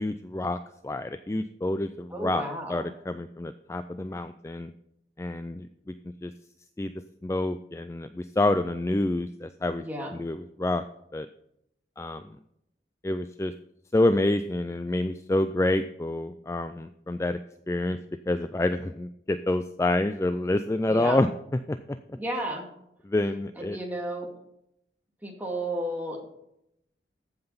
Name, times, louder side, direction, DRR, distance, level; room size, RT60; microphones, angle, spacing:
voice 1, 0.0-2.4 2.7-4.7 5.2-5.9 6.2-6.3 6.8-6.9 7.2-9.8 10.1-10.8 11.1-11.3 12.0-12.4 13.0-13.5 13.9-17.4 17.7-18.0 18.3-21.3 21.7-22.0 23.0-23.8, left 2 dB, 15° left, 10 dB, 0.3 m, -28 dB
voice 2, 2.1-2.9 9.8-10.1 20.9-21.2 22.1-22.6 23.6-24.3 25.2-26.3, right 1 dB, 10° right, -1 dB, 2.2 m, -33 dB
14.5 x 5.8 x 5.6 m, 0.80 s
head